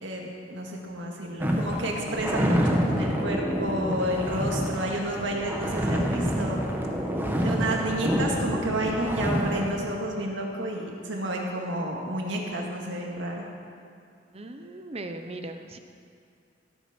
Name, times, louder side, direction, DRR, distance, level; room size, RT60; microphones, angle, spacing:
voice 1, 0.0-6.6 7.4-13.4, right 1 dB, 85° right, 0 dB, 2.0 m, -30 dB
sound 1, 1.4-9.9, equal, 10° right, 1.3 m, -27 dB
voice 2, 14.3-15.8, right 2 dB, 35° right, 6 dB, 0.7 m, -38 dB
16.0 x 9.1 x 6.1 m, 2.4 s
head